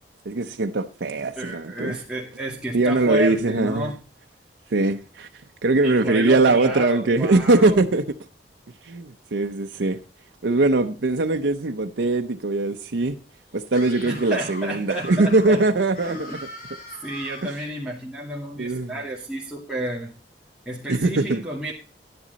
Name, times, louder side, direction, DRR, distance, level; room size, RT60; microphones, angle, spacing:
voice 1, 0.3-2.0 2.7-3.9 4.7-5.3 5.6-8.0 8.8-10.0 10.4-13.2 13.5-16.3 17.4-17.5 18.6-18.9 20.9-21.4, right 2 dB, 85° right, 0.7 m, -21 dB
voice 2, 1.4-4.0 5.8-7.8 14.0-15.6 16.0-16.4 17.0-20.1 20.7-21.7, right 1 dB, 5° right, 2.2 m, -31 dB
Screaming, 13.7-17.6, left 1 dB, 55° left, 4.0 m, -40 dB
11.0 x 10.5 x 4.0 m
head